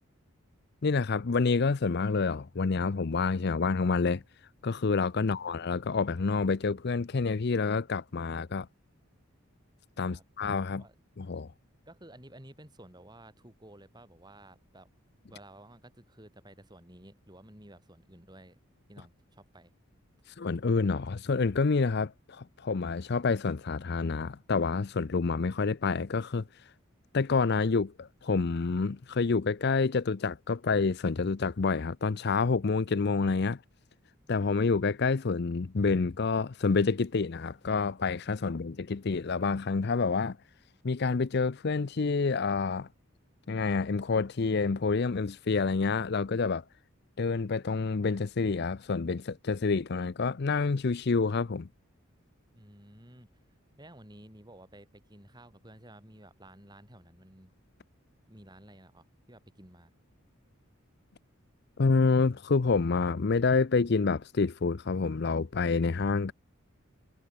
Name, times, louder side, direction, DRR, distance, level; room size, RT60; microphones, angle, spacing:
voice 1, 0.8-4.2 4.6-8.7 10.0-10.8 11.2-11.5 20.4-26.5 27.1-33.6 34.3-40.4 40.8-42.9 43.5-46.6 47.2-51.7 61.8-66.3, left 4 dB, 50° left, 0.5 m, -28 dB
voice 2, 5.2-5.5 10.0-10.2 10.8-10.9 11.9-14.9 15.3-18.6 18.9-19.7 38.4-38.5 52.5-53.3 53.8-57.5 58.3-59.9, right 1 dB, 20° right, 4.9 m, -53 dB
head